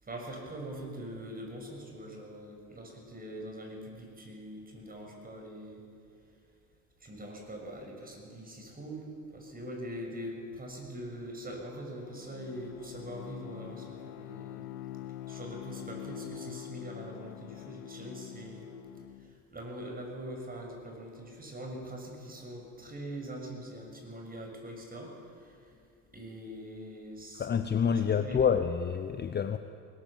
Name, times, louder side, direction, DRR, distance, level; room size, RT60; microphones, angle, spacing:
voice 1, 0.0-5.8 7.0-14.6 15.3-18.7 19.2-25.7 26.1-27.5 27.9-28.5, right 1 dB, 20° right, 1 dB, 6.6 m, -43 dB
Bowed string instrument, 11.7-19.4, left 13 dB, 90° left, 0.9 m, -45 dB
voice 2, 27.4-29.6, left 7 dB, 25° left, 10 dB, 0.8 m, -27 dB
20.5 x 19.5 x 7.4 m, 2.4 s
supercardioid pair, 90°, 43 cm